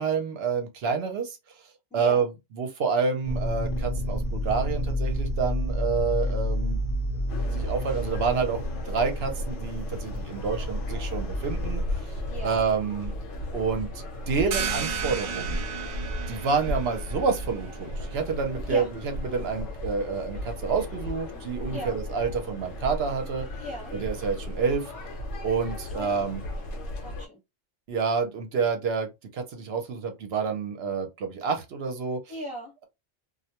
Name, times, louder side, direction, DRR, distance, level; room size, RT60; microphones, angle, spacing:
voice 1, 0.0-1.4 1.9-6.8 7.5-8.6 8.9-11.8 12.4-13.1 13.5-13.9 14.3-15.6 16.3-18.8 19.2-23.5 23.9-24.8 25.4-26.4 27.9-32.2, right 5 dB, 60° right, 0.8 m, -28 dB
voice 2, 1.9-2.3 12.3-12.6 18.7-18.9 21.7-22.0 23.6-23.9 25.9-26.2 27.0-27.4 32.3-32.7, equal, 5° right, 1.0 m, -37 dB
sound 1, 3.2-11.8, equal, 55° left, 0.7 m, -30 dB
sound 2, 7.3-27.3, left 1 dB, 70° left, 1.0 m, -35 dB
sound 3, 14.5-19.9, right 7 dB, 90° right, 0.3 m, -35 dB
2.3 x 2.1 x 2.8 m
omnidirectional pair, 1.3 m